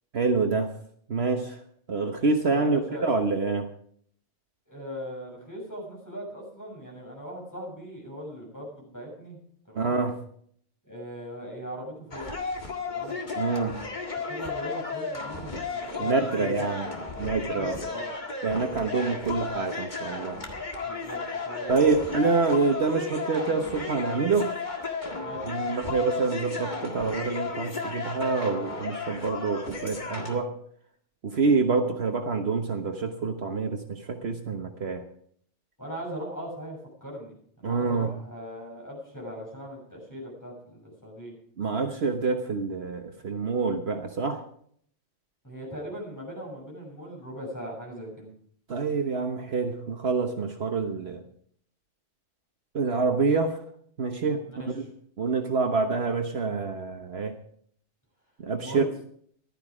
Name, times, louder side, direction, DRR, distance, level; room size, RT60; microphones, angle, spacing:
voice 1, 0.1-0.7 1.1-1.6 1.9-3.7 9.7-10.2 13.3-13.7 16.0-16.9 17.2-17.8 18.4-20.4 21.7-24.5 25.4-30.5 31.2-35.0 37.6-38.1 41.6-44.5 48.7-51.2 52.7-53.6 54.0-54.9 55.2-57.4 58.4-58.8, right 4 dB, 60° right, 4 dB, 1.4 m, -26 dB
voice 2, 2.5-3.1 4.7-9.4 9.7-10.0 10.8-12.3 12.9-13.2 14.1-16.7 17.0-17.1 17.5-18.1 20.8-22.0 25.2-25.4 35.8-41.3 45.4-48.3 54.5-54.7 58.6-58.9, equal, 15° left, -2 dB, 6.8 m, -39 dB
sound 1, 12.1-30.4, left 4 dB, 40° left, 2.1 m, -34 dB
15.0 x 12.0 x 4.9 m, 0.62 s
omnidirectional pair, 1.2 m